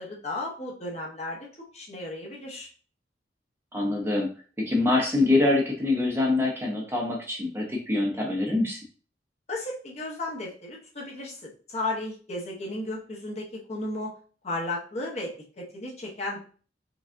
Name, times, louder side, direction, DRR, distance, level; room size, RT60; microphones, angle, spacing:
voice 1, 0.0-1.5 1.7-2.7 9.5-14.1 14.4-16.4, left 2 dB, 35° left, -3 dB, 1.0 m, -34 dB
voice 2, 3.7-4.3 4.6-8.8, left 2 dB, 15° right, -1 dB, 0.7 m, -25 dB
4.9 x 2.3 x 2.5 m, 0.40 s
head